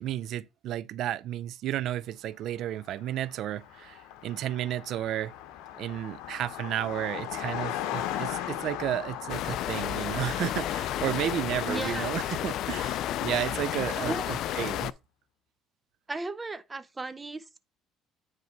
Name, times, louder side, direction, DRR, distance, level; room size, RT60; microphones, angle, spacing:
voice 1, 0.0-5.3 5.8-14.9, right 12 dB, 65° right, 0.4 m, -32 dB
Car passing by, 2.7-2.8 3.0-14.0, left 11 dB, 80° left, 0.8 m, -39 dB
sound 1, 9.3-14.9, left 12 dB, 65° left, 0.3 m, -32 dB
voice 2, 11.7-12.4 14.0-14.4 16.1-17.6, right 3 dB, 15° right, 0.6 m, -36 dB
9.5 x 3.2 x 4.5 m
cardioid pair, 110°, 0 cm